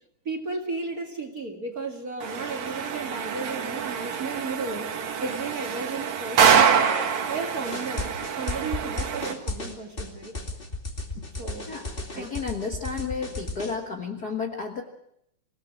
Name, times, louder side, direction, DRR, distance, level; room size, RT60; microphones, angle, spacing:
voice 1, 0.3-4.9 5.2-7.0 7.3-10.3 11.4-11.7 12.2-12.4, right 3 dB, 35° right, 5 dB, 2.2 m, -34 dB
sound 1, 2.2-9.3, right 7 dB, 70° right, 2.9 m, -25 dB
sound 2, 7.6-13.8, left 2 dB, 20° left, 2.4 m, -34 dB
voice 2, 12.1-14.8, left 5 dB, 40° left, 2 dB, 1.6 m, -32 dB
26.5 x 17.5 x 6.2 m, 0.75 s
omnidirectional pair, 3.4 m